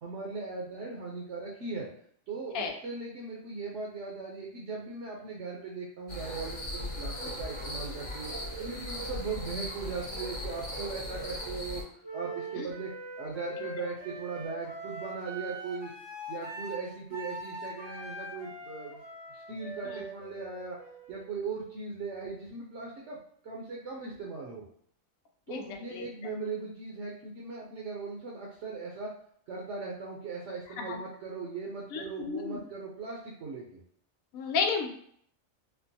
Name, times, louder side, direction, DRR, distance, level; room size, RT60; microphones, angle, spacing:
voice 1, 0.0-1.9 2.3-8.3 8.6-11.8 12.1-12.9 13.2-15.9 16.3-19.0 19.3-20.8 21.1-23.2 23.4-24.6 25.5-29.1 29.5-33.7, right 4 dB, 65° right, -3 dB, 0.9 m, -39 dB
sound 1, 6.1-11.8, equal, 30° left, 0.7 m, -38 dB
Wind instrument woodwind instrument, 12.0-21.8, right 1 dB, 30° right, 0.5 m, -42 dB
voice 2, 25.5-26.1 30.9-31.0 31.9-32.6 34.3-34.9, left 5 dB, 85° left, 2 dB, 1.1 m, -32 dB
4.4 x 2.1 x 2.7 m, 0.63 s
omnidirectional pair, 1.4 m